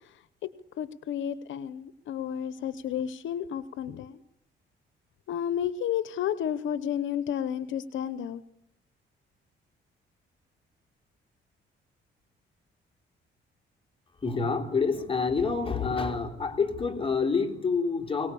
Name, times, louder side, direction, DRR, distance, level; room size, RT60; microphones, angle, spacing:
voice 1, 0.8-4.2 5.3-8.4, left 9 dB, 75° left, 15 dB, 0.9 m, -31 dB
voice 2, 14.2-18.3, left 5 dB, 25° left, 3 dB, 3.3 m, -27 dB
24.0 x 18.5 x 8.5 m, 0.78 s
cardioid pair, 90°, 20 cm